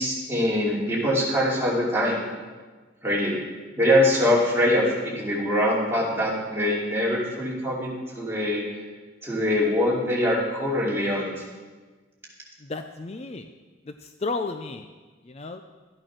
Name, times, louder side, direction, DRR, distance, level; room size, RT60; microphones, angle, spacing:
voice 1, 0.0-2.2 3.0-3.4 3.8-7.9 8.1-8.6 9.2-11.3, left 1 dB, 15° right, -5 dB, 2.8 m, -23 dB
voice 2, 12.6-13.5 13.8-14.9 15.2-15.6, left 3 dB, 35° left, 7 dB, 0.5 m, -33 dB
13.5 x 8.9 x 6.0 m, 1.3 s
head